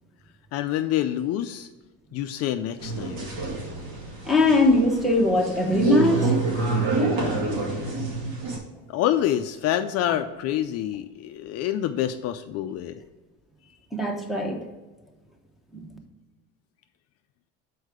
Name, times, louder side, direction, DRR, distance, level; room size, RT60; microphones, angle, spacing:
voice 1, 0.5-1.7 2.1-3.3 8.9-13.0, left 11 dB, 55° left, 8 dB, 0.4 m, -27 dB
sound 1, 2.8-8.6, right 3 dB, 70° right, 2.1 m, -27 dB
voice 2, 4.2-6.3 13.9-14.6 15.7-16.0, left 2 dB, ahead, -1 dB, 0.9 m, -21 dB
6.4 x 4.6 x 4.9 m, 1.2 s
cardioid pair, 160°, 30 cm